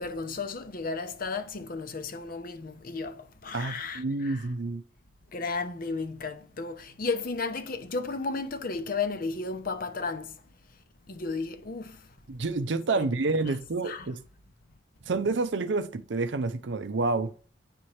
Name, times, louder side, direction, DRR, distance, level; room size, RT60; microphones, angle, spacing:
voice 1, 0.0-4.4 5.3-10.3 11.1-11.9 13.8-14.1, left 4 dB, 50° left, 0.7 m, -33 dB
voice 2, 3.5-4.8 12.3-14.2 15.1-17.3, right 3 dB, 70° right, 0.6 m, -29 dB
9.5 x 4.2 x 3.2 m
head